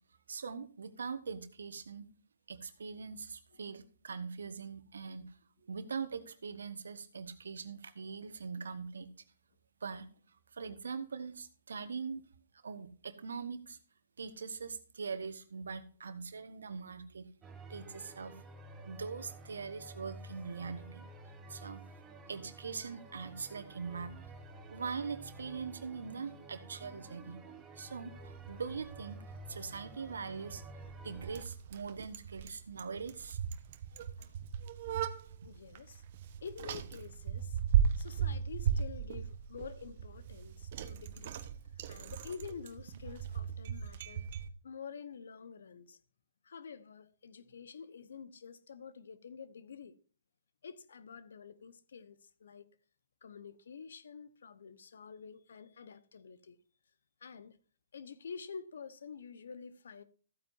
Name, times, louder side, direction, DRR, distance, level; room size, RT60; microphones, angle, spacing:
voice 1, 0.3-2.0 2.5-9.1 9.8-10.1 10.5-12.2 12.6-13.8 14.2-17.3 17.7-18.5 18.9-21.0 21.5-21.8 22.3-24.3 24.7-29.2 29.5-30.6 31.0-33.4, right 5 dB, 75° right, 1.3 m, -42 dB
sound 1, 17.4-31.5, right 2 dB, 15° right, 1.6 m, -51 dB
Bicycle, 28.2-44.5, right 8 dB, 50° right, 1.1 m, -37 dB
voice 2, 35.4-36.0 36.4-37.6 38.0-41.4 41.9-44.3 44.6-46.0 46.4-49.9 50.6-52.7 53.2-56.6 57.2-57.5 57.9-60.0, left 6 dB, 70° left, 1.0 m, -48 dB
14.5 x 9.1 x 2.7 m
hypercardioid pair, 130°, 0 cm